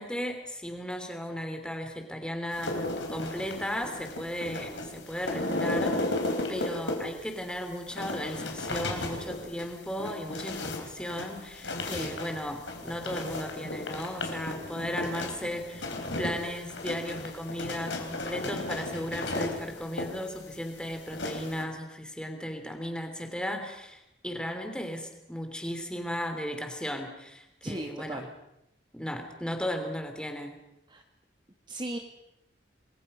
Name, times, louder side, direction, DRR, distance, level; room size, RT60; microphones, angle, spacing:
voice 1, 0.0-2.7 3.1-6.2 6.5-15.9 16.2-28.3 28.9-30.6, equal, 5° left, 5 dB, 3.0 m, -36 dB
sound 1, 2.5-21.6, left 2 dB, 85° left, 4.0 m, -35 dB
voice 2, 27.6-28.3 30.9-31.0 31.7-32.0, right 1 dB, 25° right, 4 dB, 1.5 m, -36 dB
27.5 x 21.0 x 5.5 m, 0.85 s
head